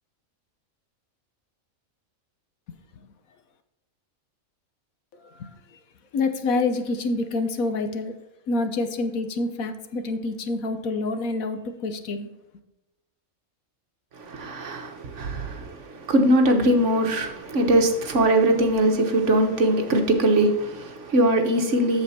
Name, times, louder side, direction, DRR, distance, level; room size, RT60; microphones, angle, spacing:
voice 1, 6.1-8.1 8.5-12.3, left 3 dB, 75° left, 1.4 m, -27 dB
voice 2, 14.2-22.0, right 1 dB, 60° right, 1.5 m, -21 dB
8.0 x 7.1 x 4.2 m
omnidirectional pair, 1.5 m